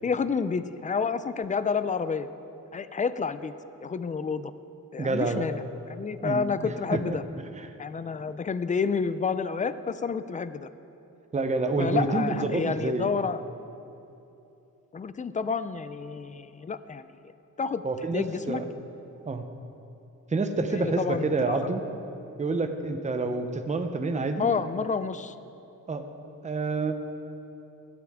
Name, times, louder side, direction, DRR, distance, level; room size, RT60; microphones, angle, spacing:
voice 1, 0.0-2.3 2.7-3.5 3.8-4.5 4.9-7.2 7.8-10.7 11.8-13.4 14.9-17.0 17.6-17.8 18.1-18.6 20.7-21.6 24.4-25.3, left 5 dB, 25° left, 13 dB, 0.4 m, -29 dB
voice 2, 5.0-5.5 6.2-7.2 7.6-7.7 11.3-13.1 17.8-18.7 19.3-19.4 20.3-21.8 22.4-24.5 25.9-26.0 26.4-26.9, right 3 dB, 20° right, 6 dB, 0.8 m, -28 dB
17.0 x 11.5 x 3.6 m, 2.9 s
wide cardioid pair, 135°, 33 cm